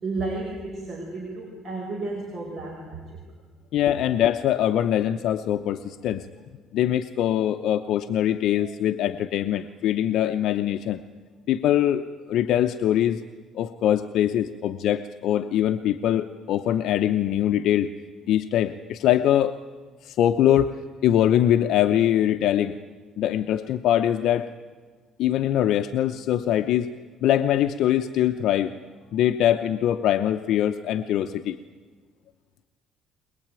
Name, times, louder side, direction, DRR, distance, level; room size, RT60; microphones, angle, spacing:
voice 1, 0.0-3.2, right 3 dB, 35° right, -2 dB, 5.1 m, -32 dB
voice 2, 3.7-6.2 6.7-11.0 11.5-13.2 13.5-17.9 18.3-19.5 20.0-22.7 23.2-24.5 25.2-26.9 27.2-28.7 29.1-31.6, left 11 dB, 65° left, 8 dB, 0.8 m, -23 dB
22.0 x 22.0 x 9.0 m, 1.4 s
cardioid pair, 155°, 0 cm